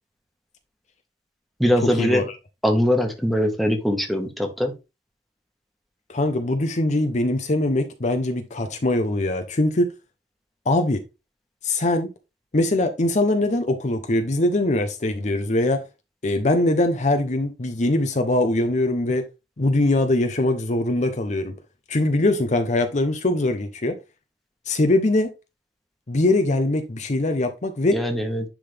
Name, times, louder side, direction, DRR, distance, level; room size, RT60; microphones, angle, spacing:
voice 1, 1.6-2.2 2.6-4.7 27.9-28.4, equal, ahead, 1.5 m, -21 dB
voice 2, 6.1-9.8 10.7-11.0 11.6-12.1 12.5-15.8 16.2-19.2 19.6-21.5 21.9-23.9 24.7-25.3 26.1-27.9, left 2 dB, 45° left, 0.7 m, -22 dB
10.0 x 3.8 x 3.4 m
head